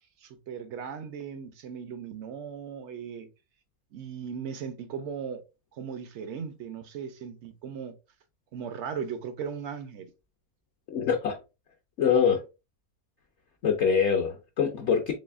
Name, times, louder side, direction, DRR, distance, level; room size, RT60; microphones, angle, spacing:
voice 1, 0.2-3.3 3.9-5.4 5.7-7.9 8.5-10.1, right 7 dB, 65° right, 0.7 m, -37 dB
voice 2, 10.9-11.4 12.0-12.4 13.6-15.1, left 6 dB, 60° left, 0.8 m, -24 dB
4.0 x 3.2 x 2.3 m
omnidirectional pair, 1.5 m